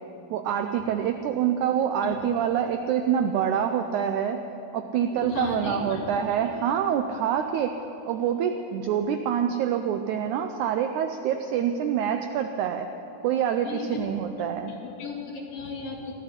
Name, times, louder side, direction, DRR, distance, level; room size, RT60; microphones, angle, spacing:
voice 1, 0.3-4.4 4.7-7.8 8.1-12.9 13.2-14.7, right 8 dB, 85° right, 6 dB, 1.7 m, -26 dB
voice 2, 5.1-6.0 13.6-14.1 14.8-16.1, left 5 dB, 75° left, -3 dB, 3.8 m, -35 dB
20.0 x 14.0 x 4.4 m, 3.0 s
omnidirectional pair, 4.1 m